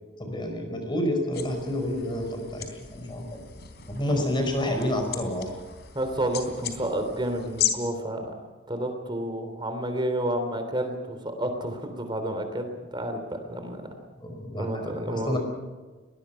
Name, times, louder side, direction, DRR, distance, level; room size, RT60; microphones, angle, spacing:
voice 1, 0.2-2.7 2.9-3.4 3.9-5.5 14.2-15.4, left 1 dB, 25° left, 4 dB, 5.0 m, -29 dB
sound 1, 1.3-7.7, left 11 dB, 55° left, 3.7 m, -36 dB
voice 2, 5.9-8.3 8.7-14.0 14.6-15.4, right 1 dB, 25° right, 7 dB, 3.3 m, -30 dB
23.5 x 20.0 x 5.8 m, 1.3 s
head